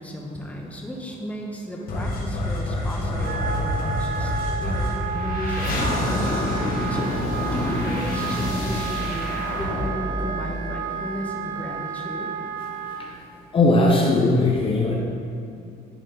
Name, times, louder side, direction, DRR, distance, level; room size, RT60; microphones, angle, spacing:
voice 1, 0.0-4.3 4.6-5.9 6.9-7.1 7.5-12.3, equal, 10° left, -1 dB, 1.0 m, -34 dB
sound 1, 1.9-11.2, left 1 dB, 60° left, 1.6 m, -27 dB
Wind instrument woodwind instrument, 3.1-13.0, right 6 dB, 55° right, 0.5 m, -32 dB
Walk footsteps, 3.2-3.4 4.3-4.5 4.8-6.3 6.5-6.7 7.2-7.3 7.6-7.8 8.1-8.4 8.7-8.9 9.6-10.3, left 1 dB, 90° left, 1.5 m, -43 dB
voice 2, 13.5-14.9, left 2 dB, 30° left, -1 dB, 0.8 m, -19 dB
10.0 x 4.1 x 4.0 m, 2.6 s
cardioid pair, 110°, 17 cm